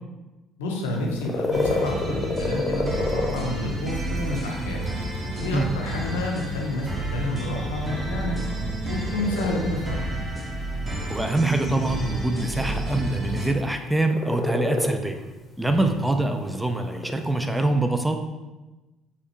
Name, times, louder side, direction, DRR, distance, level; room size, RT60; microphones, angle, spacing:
voice 1, 0.6-4.9 5.4-8.5 8.8-10.0 15.6-15.9, left 2 dB, 90° left, 0 dB, 0.6 m, -30 dB
sound 1, 0.9-17.6, left 2 dB, 25° left, 0.8 m, -32 dB
sound 2, 1.5-13.5, right 1 dB, 25° right, 1.1 m, -30 dB
voice 2, 11.1-15.2 15.6-18.2, right 2 dB, 10° right, 5 dB, 0.4 m, -24 dB
4.2 x 2.4 x 2.9 m, 1.1 s
hypercardioid pair, 65°, 0 cm